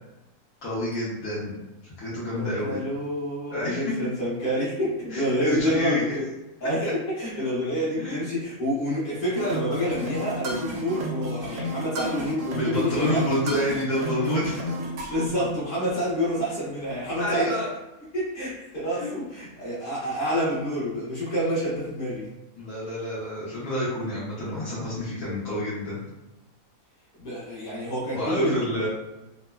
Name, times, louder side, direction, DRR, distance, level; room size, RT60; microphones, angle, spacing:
voice 1, 0.6-1.6 1.8-2.8 3.5-3.8 5.1-6.1 6.8-6.9 8.0-8.2 12.5-14.7 17.2-17.7 18.9-19.1 22.6-26.0 28.1-28.9, left 1 dB, 70° left, -8 dB, 1.1 m, -28 dB
voice 2, 2.3-6.3 6.6-6.9 7.2-13.3 15.1-17.5 18.1-22.3 27.2-28.9, equal, 40° left, -8 dB, 1.1 m, -28 dB
sound 1, 9.4-15.3, equal, 75° right, 1.1 m, -32 dB
3.0 x 2.1 x 2.2 m, 1.0 s
omnidirectional pair, 1.6 m